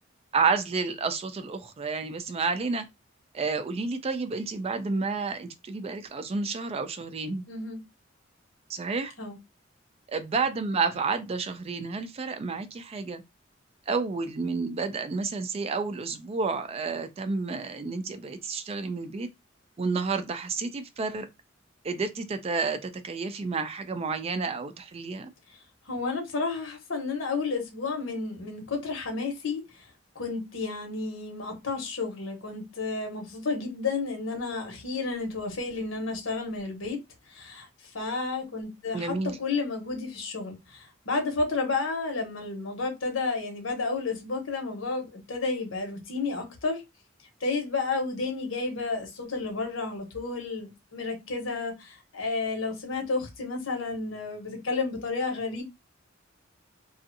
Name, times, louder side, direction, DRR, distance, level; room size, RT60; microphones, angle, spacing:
voice 1, 0.3-2.9 3.3-7.4 8.7-9.1 10.1-13.2 13.9-19.3 19.8-21.3 21.8-25.3 38.9-39.4, right 4 dB, 30° right, 0.3 m, -30 dB
voice 2, 7.5-7.8 9.2-9.4 25.9-29.9 30.1-37.0 37.3-37.7 37.9-46.8 47.4-55.6, left 3 dB, 85° left, 1.1 m, -31 dB
2.5 x 2.4 x 2.6 m
head